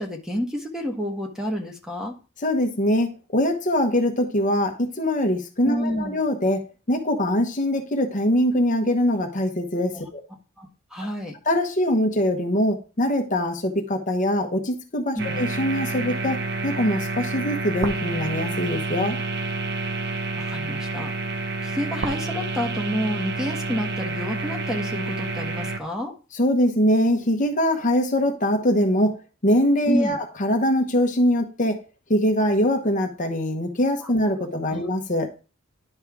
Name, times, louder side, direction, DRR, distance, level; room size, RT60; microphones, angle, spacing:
voice 1, 0.0-2.1 5.6-6.1 9.9-10.0 10.6-11.3 15.1-15.3 20.1-21.1 21.6-26.1 29.9-30.2 34.0-34.1 34.7-34.8, equal, 5° right, 2 dB, 1.4 m, -29 dB
voice 2, 2.4-10.2 11.4-19.2 26.3-29.1 29.4-31.8 32.1-35.3, left 1 dB, 40° left, 4 dB, 1.1 m, -23 dB
sound 1, 15.2-25.8, right 3 dB, 55° right, 0.7 m, -29 dB
11.0 x 5.4 x 3.6 m, 0.33 s
head